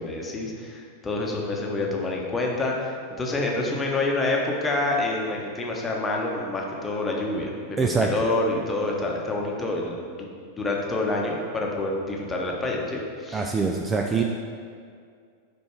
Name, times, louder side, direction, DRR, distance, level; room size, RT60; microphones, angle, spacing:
voice 1, 0.0-10.3 10.6-13.4, left 2 dB, 15° left, -1 dB, 1.0 m, -27 dB
voice 2, 7.8-8.1 13.3-14.2, right 4 dB, 15° right, 2 dB, 0.3 m, -24 dB
5.2 x 4.5 x 4.5 m, 2.2 s
figure-of-eight pair, 90°, 0 cm